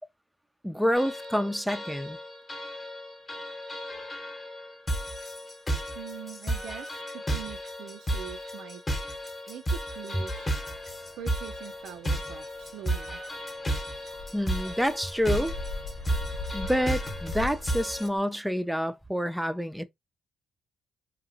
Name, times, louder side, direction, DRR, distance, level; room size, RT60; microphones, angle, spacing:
voice 1, 0.6-2.2 14.3-15.5 16.5-19.8, equal, ahead, 0.4 m, -28 dB
sound 1, 0.9-18.1, right 1 dB, 25° left, 0.8 m, -34 dB
voice 2, 6.0-8.8 9.5-10.6 11.2-13.2, right 9 dB, 80° right, 0.4 m, -43 dB
sound 2, 10.5-18.2, left 3 dB, 70° left, 0.6 m, -40 dB
2.9 x 2.3 x 2.6 m
cardioid pair, 90°, 0 cm